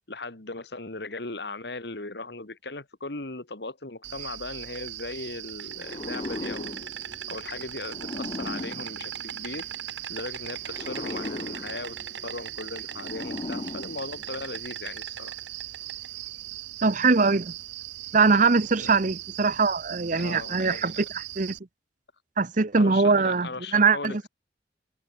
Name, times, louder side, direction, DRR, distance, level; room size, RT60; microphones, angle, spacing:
voice 1, 0.1-6.9 7.3-9.7 10.1-15.4 18.8-19.1 20.2-21.0 22.7-24.3, left 3 dB, 65° left, 2.0 m, -38 dB
Insect, 4.0-21.6, right 12 dB, 85° right, 1.4 m, -38 dB
sound 1, 5.8-9.9 10.6-14.6, left 2 dB, 30° left, 0.5 m, -38 dB
voice 2, 16.8-17.5 18.1-21.0 21.4-21.6 22.4-24.2, right 4 dB, 45° right, 0.9 m, -22 dB
head